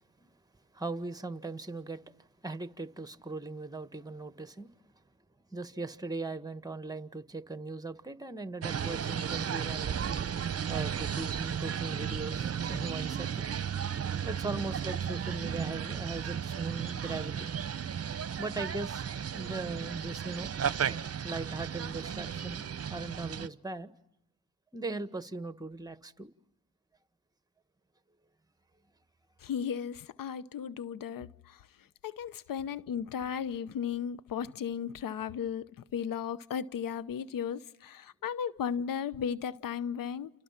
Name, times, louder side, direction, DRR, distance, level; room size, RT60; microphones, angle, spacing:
voice 1, 0.7-2.1 2.4-4.7 5.5-10.1 10.7-13.4 14.3-17.5 18.4-20.6 21.2-23.9 24.7-26.3, right 3 dB, 10° right, 1.6 m, -39 dB
sound 1, 8.6-23.5, right 8 dB, 45° right, 1.0 m, -34 dB
voice 2, 29.4-31.6 32.0-40.3, left 7 dB, 75° left, 0.9 m, -35 dB
29.5 x 29.5 x 5.9 m
supercardioid pair, 55°, 34 cm